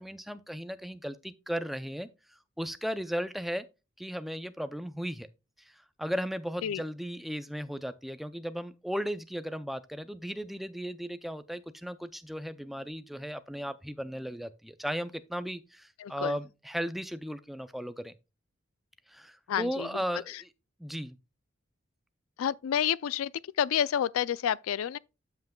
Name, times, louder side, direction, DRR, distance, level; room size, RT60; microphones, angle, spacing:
voice 1, 0.0-2.1 2.6-3.6 4.0-5.3 5.6-18.1 19.1-20.5 20.8-21.2, equal, ahead, 0.4 m, -36 dB
voice 2, 16.0-16.4 19.5-19.9 20.1-20.4 22.4-23.3 23.6-25.0, left 9 dB, 85° left, 0.3 m, -29 dB
12.5 x 5.8 x 2.2 m
head